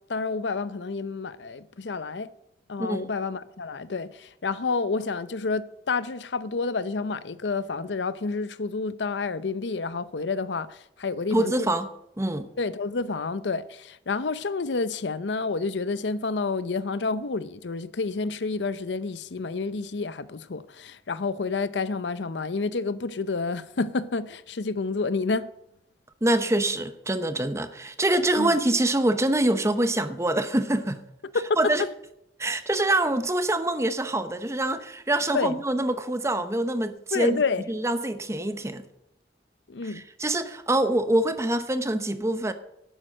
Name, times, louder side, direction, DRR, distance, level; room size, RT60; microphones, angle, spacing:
voice 1, 0.1-2.3 2.7-11.7 12.6-25.5 28.3-28.6 31.3-31.9 35.3-35.6 37.1-37.6 39.7-40.0, left 4 dB, 90° left, 0.6 m, -29 dB
voice 2, 11.3-11.9 12.2-12.5 26.2-31.0 31.6-31.8 32.4-37.4 37.7-38.9 39.8-42.5, right 1 dB, 15° right, 0.8 m, -25 dB
11.5 x 8.8 x 6.3 m
head